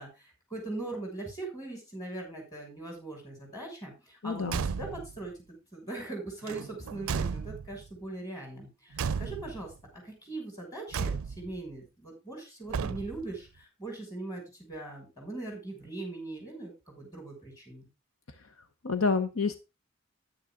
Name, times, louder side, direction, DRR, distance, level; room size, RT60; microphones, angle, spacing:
voice 1, 0.0-4.5 4.7-5.3 5.7-17.9, right 2 dB, 15° left, 0 dB, 6.2 m, -40 dB
voice 2, 4.2-4.6 18.8-19.6, left 4 dB, 80° left, 9 dB, 1.0 m, -28 dB
Car / Truck / Slam, 4.4-5.2 6.4-7.9 8.9-9.7 10.9-11.6 12.7-13.4, right 6 dB, 85° right, 0.4 m, -34 dB
10.5 x 9.6 x 3.7 m, 0.27 s
head